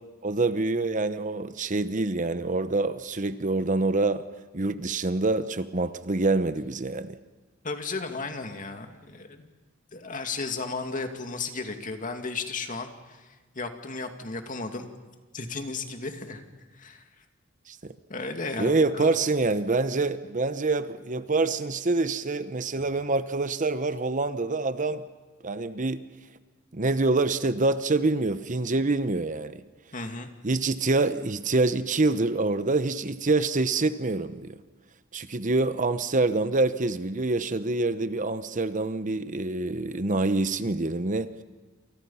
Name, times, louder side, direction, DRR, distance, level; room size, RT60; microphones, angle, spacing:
voice 1, 0.2-4.3 4.5-7.2 17.7-17.9 18.6-25.0 25.4-26.0 26.7-29.6 30.4-34.6 35.1-41.4, right 3 dB, 40° right, 0.9 m, -26 dB
voice 2, 7.6-9.5 9.9-14.9 15.3-16.4 16.7-17.0 18.1-19.1 29.9-30.3, left 3 dB, 40° left, 2.5 m, -34 dB
29.0 x 28.0 x 5.7 m
head